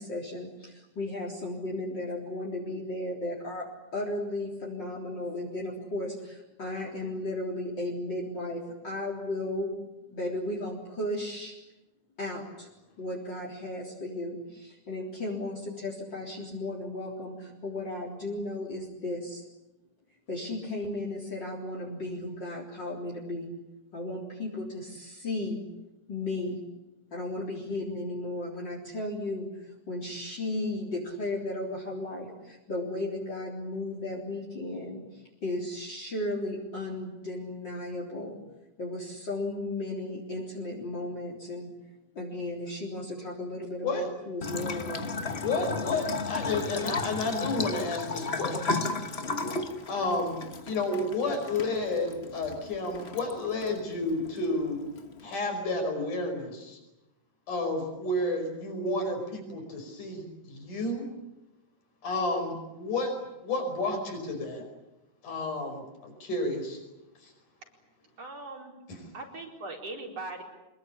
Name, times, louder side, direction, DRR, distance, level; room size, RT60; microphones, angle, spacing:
voice 1, 0.0-9.7 10.1-11.5 12.2-12.7 13.0-19.4 20.3-23.5 23.9-25.6 26.1-26.6 27.1-38.4 38.8-41.7 42.1-45.3, left 1 dB, 35° left, 0 dB, 4.3 m, -35 dB
Bathtub (filling or washing) / Trickle dribble, 44.4-55.4, left 3 dB, 55° left, 0.7 m, -35 dB
voice 2, 45.4-48.9 49.9-50.4 50.6-54.8 55.2-56.8 57.5-61.1 62.0-63.1 63.4-64.7 65.2-66.8 67.2-67.3 68.9-69.0, left 2 dB, 90° left, 5 dB, 6.8 m, -31 dB
voice 3, 68.2-68.8 69.1-70.4, right 2 dB, 55° right, 1 dB, 5.7 m, -40 dB
25.5 x 22.0 x 10.0 m, 0.98 s
omnidirectional pair, 3.5 m